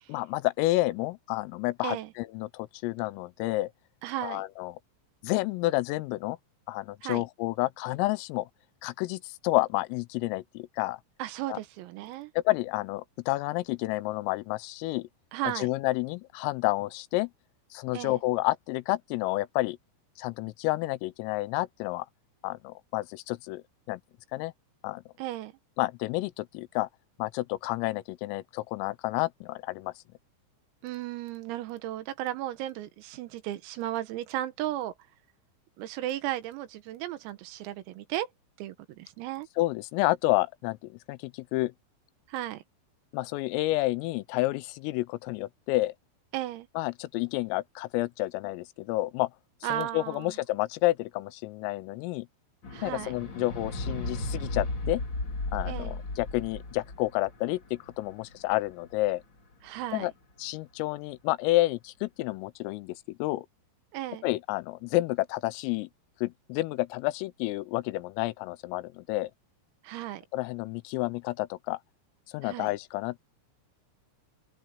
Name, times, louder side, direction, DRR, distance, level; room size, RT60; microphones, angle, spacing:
voice 1, 0.1-3.7 4.2-4.8 5.2-6.4 6.7-8.5 8.8-11.0 11.5-11.6 12.4-15.1 15.6-17.3 17.7-19.8 20.2-22.1 22.4-24.0 24.3-24.5 24.8-25.0 25.8-26.9 27.2-29.9 39.6-41.7 43.1-45.9 46.8-49.3 49.7-52.3 52.8-55.0 55.5-59.2 59.9-60.1 60.4-63.5 64.2-65.9 66.2-69.3 70.3-71.8 72.3-73.2, left 19 dB, 85° left, 3.3 m, -30 dB
voice 2, 4.0-4.4 7.0-7.2 11.2-12.3 15.3-15.7 17.9-18.2 25.2-25.5 30.8-34.9 35.8-38.3 38.6-39.5 42.3-42.6 46.3-46.7 49.6-50.4 52.7-53.2 55.7-56.0 59.6-60.1 63.9-64.3 69.8-70.3 72.4-72.7, right 14 dB, 85° right, 4.1 m, -35 dB
sound 1, 52.6-59.1 59.9-60.0, left 2 dB, 25° left, 3.1 m, -35 dB
open air
omnidirectional pair, 6.0 m